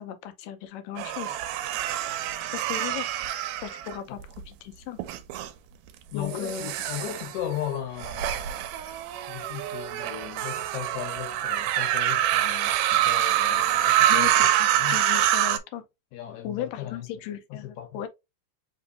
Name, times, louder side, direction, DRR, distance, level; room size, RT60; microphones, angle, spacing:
voice 1, 0.0-1.3 2.5-3.1 3.6-5.0 6.1-6.7 14.1-15.8 16.4-18.1, left 10 dB, 85° left, 2.3 m, -36 dB
sound 1, 1.0-4.4 5.0-5.5 6.2-15.6, right 12 dB, 85° right, 2.1 m, -26 dB
voice 2, 6.1-8.6 9.3-14.5 14.7-15.0 16.1-17.1 17.5-18.0, left 11 dB, 70° left, 2.2 m, -37 dB
5.2 x 3.0 x 2.7 m
omnidirectional pair, 3.7 m